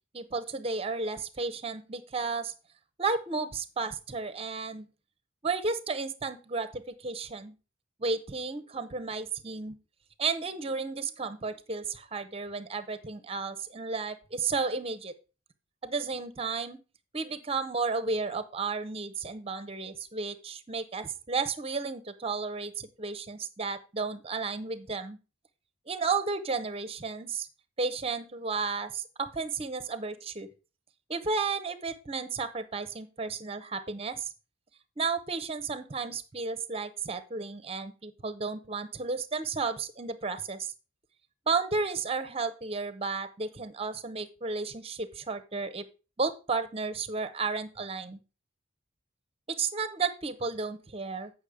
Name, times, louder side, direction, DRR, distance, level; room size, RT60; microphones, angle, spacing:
voice 1, 0.1-2.5 3.0-4.9 5.4-7.5 8.0-9.7 10.2-15.1 15.8-16.8 17.1-25.2 25.9-27.5 27.8-30.5 31.1-34.3 35.0-40.7 41.5-45.9 46.2-48.2 49.5-51.3, right 4 dB, 30° right, 13 dB, 0.7 m, -33 dB
8.3 x 5.9 x 4.9 m, 0.32 s
head